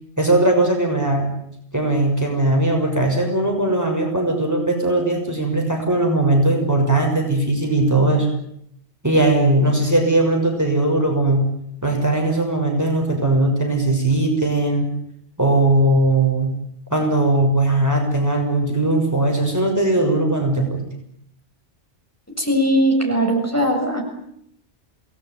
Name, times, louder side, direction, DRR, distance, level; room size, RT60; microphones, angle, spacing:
voice 1, 0.2-1.3 1.7-8.3 9.0-11.5 11.8-14.9 15.4-16.6 16.9-20.8, right 2 dB, 15° right, 2 dB, 6.3 m, -19 dB
voice 2, 22.4-24.0, equal, 15° left, 1 dB, 7.2 m, -19 dB
28.5 x 20.0 x 9.6 m, 0.73 s
omnidirectional pair, 1.2 m